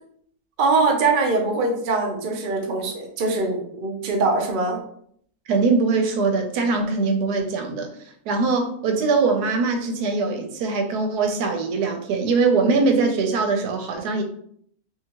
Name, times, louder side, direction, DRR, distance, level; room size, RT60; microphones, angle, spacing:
voice 1, 0.6-4.8, right 3 dB, 60° right, 1 dB, 0.5 m, -22 dB
voice 2, 5.5-7.9 8.3-14.2, right 4 dB, 90° right, 4 dB, 1.2 m, -22 dB
2.8 x 2.7 x 2.8 m, 0.65 s
omnidirectional pair, 1.6 m